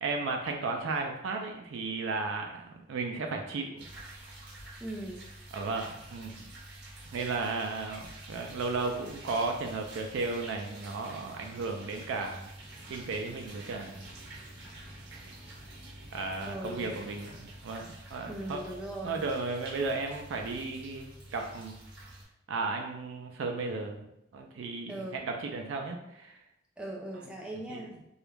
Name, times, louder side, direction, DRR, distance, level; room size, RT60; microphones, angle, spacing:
voice 1, 0.0-3.9 5.5-6.4 7.1-12.5 12.9-14.0 16.1-18.6 19.0-21.8 22.5-24.1 24.3-26.3 27.7-27.8, right 3 dB, 85° right, 3 dB, 0.3 m, -34 dB
sound 1, 3.8-22.2, right 1 dB, 60° right, 0.7 m, -48 dB
voice 2, 4.8-5.2 16.5-17.0 18.3-19.2 24.9-25.2 26.8-27.9, right 1 dB, 5° right, -3 dB, 0.4 m, -39 dB
2.3 x 2.0 x 3.1 m, 0.80 s
head